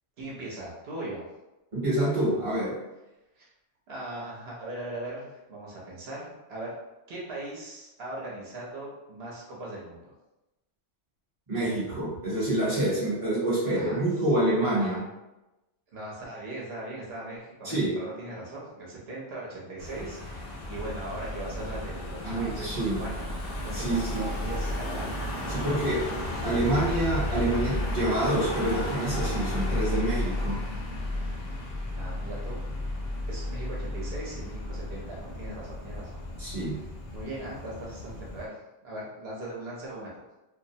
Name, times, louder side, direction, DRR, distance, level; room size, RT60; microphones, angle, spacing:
voice 1, 0.2-1.2 3.4-3.5 3.9-6.7 7.1-10.1 11.9-12.0 13.7-14.1 14.8-15.0 15.9-25.8 31.9-32.6 33.3-36.2 37.1-38.5 38.8-40.2, right 1 dB, 60° right, -5 dB, 0.9 m, -39 dB
voice 2, 1.7-2.7 11.5-15.0 17.6-17.9 22.2-23.0 23.7-24.2 25.5-26.0 26.4-30.6 36.4-36.8, right 1 dB, 30° right, -9 dB, 0.8 m, -27 dB
Car passing by / Engine, 19.8-38.5, left 1 dB, 55° left, 0.5 m, -33 dB
2.5 x 2.0 x 2.6 m, 1.0 s
omnidirectional pair, 1.2 m